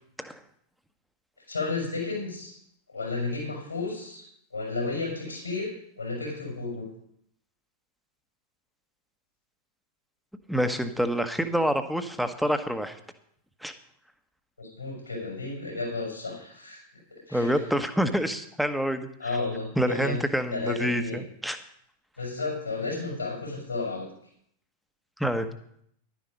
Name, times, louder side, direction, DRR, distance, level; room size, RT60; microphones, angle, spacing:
voice 1, 1.5-2.6 2.9-4.2 4.5-6.9 14.6-16.8 17.1-17.6 19.2-20.2 20.5-21.2 22.2-24.1, left 3 dB, 80° left, 1 dB, 5.7 m, -32 dB
voice 2, 10.5-13.0 13.6-13.7 17.3-19.1 19.8-21.6 25.2-25.5, equal, ahead, 8 dB, 1.1 m, -27 dB
11.5 x 10.0 x 5.2 m, 0.69 s
figure-of-eight pair, 90°, 0 cm